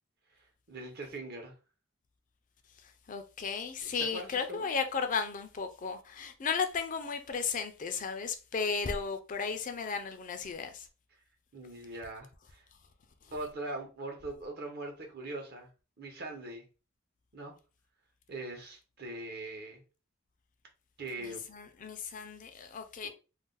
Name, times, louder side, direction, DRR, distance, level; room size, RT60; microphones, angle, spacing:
voice 1, 0.3-1.6 4.1-4.7 11.5-12.6 13.3-15.7 16.0-16.6 17.3-17.5 18.3-19.8 21.0-21.4 23.0-23.1, right 2 dB, 50° right, 0.9 m, -41 dB
voice 2, 2.7-10.9 13.2-13.3 21.2-23.1, left 5 dB, 40° left, 0.4 m, -35 dB
2.5 x 2.1 x 3.8 m
head